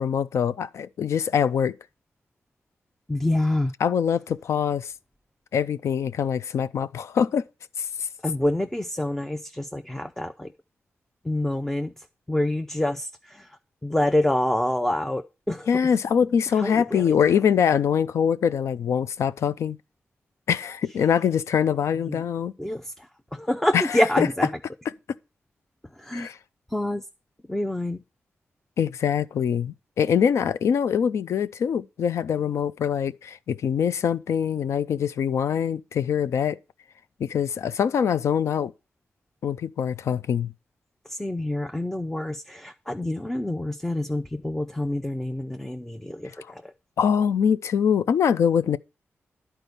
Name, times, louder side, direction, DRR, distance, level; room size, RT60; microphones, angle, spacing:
voice 1, 0.0-1.8 3.8-4.9 5.5-7.4 7.8-7.9 15.7-19.8 20.5-22.5 23.7-24.3 26.1-26.4 28.8-36.6 37.2-38.7 39.4-40.5 47.0-48.8, left 7 dB, 85° left, 0.5 m, -23 dB
voice 2, 3.1-3.7 8.2-10.5 11.2-15.7 16.5-17.4 22.1-22.2 22.6-24.5 26.0-26.3 26.7-27.0 27.5-28.0 41.1-46.7, left 1 dB, 5° left, 0.5 m, -27 dB
11.0 x 4.5 x 6.8 m
wide cardioid pair, 125°, 5 cm